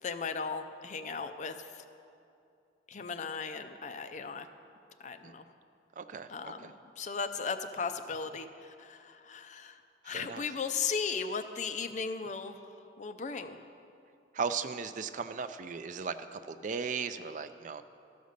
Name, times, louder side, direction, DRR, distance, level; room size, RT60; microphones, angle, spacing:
voice 1, 0.0-1.8 2.9-4.5 5.0-5.4 6.3-12.6 13.0-13.6, left 5 dB, 40° left, 8 dB, 0.4 m, -37 dB
voice 2, 6.0-6.7 10.1-10.4 14.3-17.8, right 5 dB, 40° right, 11 dB, 0.4 m, -37 dB
13.5 x 5.2 x 6.5 m, 2.7 s
head